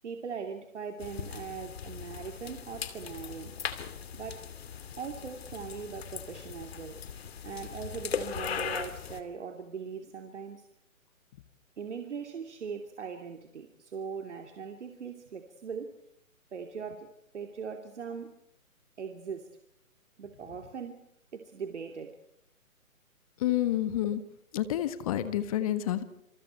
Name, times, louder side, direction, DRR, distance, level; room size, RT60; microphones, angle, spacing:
voice 1, 0.0-3.5 4.1-4.4 5.0-7.0 7.4-10.7 11.8-15.9 16.5-17.1 17.3-18.3 19.0-19.5 20.2-21.0 21.3-22.1 23.6-23.8, right 6 dB, 55° right, 4 dB, 2.9 m, -40 dB
sound 1, 1.0-9.2, left 7 dB, 45° left, 2.7 m, -39 dB
voice 2, 23.4-24.2 24.5-26.0, left 12 dB, 25° left, 12 dB, 1.5 m, -29 dB
28.0 x 27.5 x 4.6 m, 0.79 s
figure-of-eight pair, 145°, 42 cm